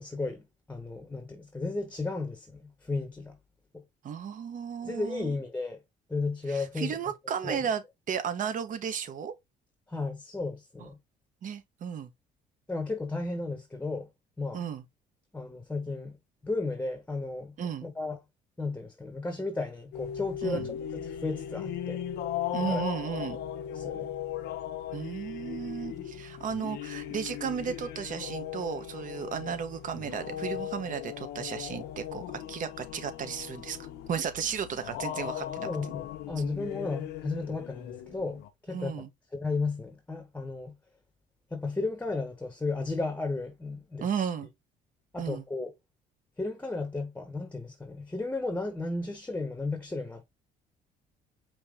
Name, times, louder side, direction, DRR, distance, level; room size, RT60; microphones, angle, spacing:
voice 1, 0.0-3.4 4.8-5.8 6.1-7.0 7.4-7.6 9.9-11.0 12.7-14.1 14.4-14.6 15.3-16.2 16.4-17.5 17.8-18.2 18.6-22.0 22.6-22.9 23.7-24.1 35.7-39.0 39.3-40.7 41.5-44.3 45.1-45.7 46.4-50.2, left 3 dB, 10° left, 0.9 m, -34 dB
voice 2, 4.0-5.4 6.5-9.3 10.8-10.9 11.4-12.1 14.5-14.8 17.6-17.9 20.4-20.7 22.5-23.4 24.9-35.9 38.7-39.1 44.0-44.5 45.2-45.4, right 7 dB, 50° right, 1.0 m, -34 dB
sound 1, 19.9-38.5, left 10 dB, 80° left, 0.8 m, -38 dB
5.1 x 2.9 x 3.6 m
cardioid pair, 110°, 17 cm